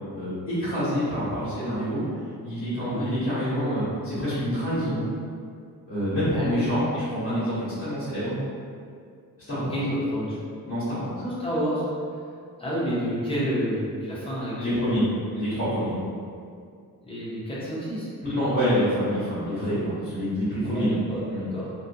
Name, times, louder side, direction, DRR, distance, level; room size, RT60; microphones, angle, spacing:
voice 1, 0.1-2.0 2.4-5.1 5.9-8.3 9.5-9.8 10.6-11.2 14.6-15.0 15.3-16.0 18.3-21.0 21.3-21.5, equal, 35° left, -14 dB, 1.0 m, -27 dB
voice 2, 2.8-3.1 6.3-6.7 9.7-10.4 11.2-11.8 12.6-15.1 17.0-18.1 20.5-21.7, equal, 15° left, -8 dB, 0.5 m, -29 dB
2.4 x 2.2 x 2.6 m, 2.3 s
wide cardioid pair, 175°, 36 cm